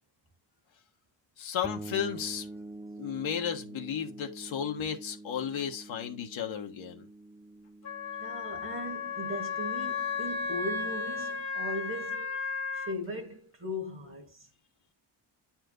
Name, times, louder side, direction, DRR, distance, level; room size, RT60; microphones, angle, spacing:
voice 1, 1.4-2.5 3.0-7.1, left 8 dB, 70° left, 1.5 m, -34 dB
sound 1, 1.6-11.2, right 2 dB, ahead, 0.4 m, -47 dB
Wind instrument woodwind instrument, 7.8-13.0, left 5 dB, 35° left, 1.3 m, -34 dB
voice 2, 8.2-12.4 12.7-14.5, equal, 25° right, 1.6 m, -38 dB
9.2 x 4.5 x 3.9 m
cardioid pair, 160°, 49 cm